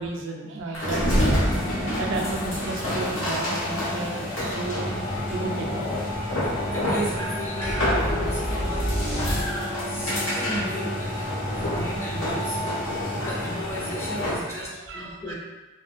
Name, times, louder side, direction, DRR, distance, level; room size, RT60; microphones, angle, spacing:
voice 1, 0.0-4.9 5.3-6.0 8.2-8.4 11.4-11.7 12.6-13.3 14.3-15.3, right 3 dB, 65° right, 0 dB, 0.3 m, -34 dB
sound 1, 0.7-14.5, left 1 dB, 85° left, 0.8 m, -27 dB
voice 2, 6.4-8.9 9.2-12.7 13.1-15.3, equal, 10° left, -5 dB, 0.4 m, -35 dB
sound 2, 7.6-9.9, equal, 55° left, 0.6 m, -28 dB
2.4 x 2.1 x 2.4 m, 1.2 s
head